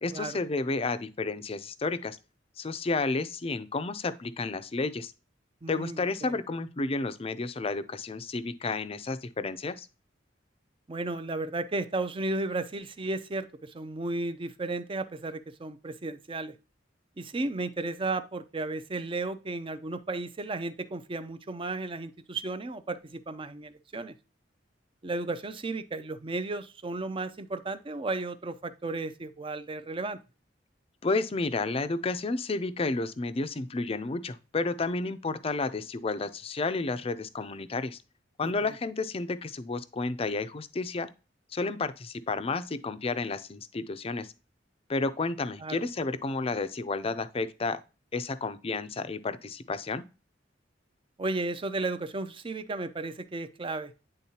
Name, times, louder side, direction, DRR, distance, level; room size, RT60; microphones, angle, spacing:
voice 1, 0.0-2.2 2.6-5.1 5.7-9.9 31.0-38.0 38.4-41.1 41.5-44.3 44.9-47.8 48.1-50.0, left 3 dB, 30° left, 0.5 m, -31 dB
voice 2, 5.6-6.4 10.9-16.5 17.2-24.1 25.0-30.2 38.4-38.7 45.6-45.8 51.2-53.9, right 2 dB, 30° right, 0.5 m, -34 dB
9.9 x 3.7 x 2.8 m
head